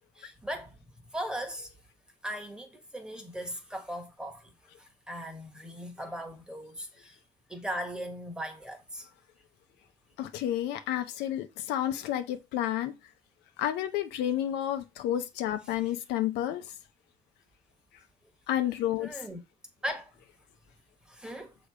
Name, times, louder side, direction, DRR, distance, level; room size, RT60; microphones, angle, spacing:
voice 1, 0.1-0.8 1.1-1.7 2.2-4.5 4.8-7.2 7.5-9.1 15.8-15.9 19.0-19.4 19.8-20.1 21.0-21.6, equal, 5° right, 1.4 m, -38 dB
voice 2, 10.2-12.9 13.6-16.7 18.5-19.1, left 12 dB, 90° left, 0.8 m, -30 dB
6.6 x 3.1 x 4.8 m
cardioid pair, 110°, 17 cm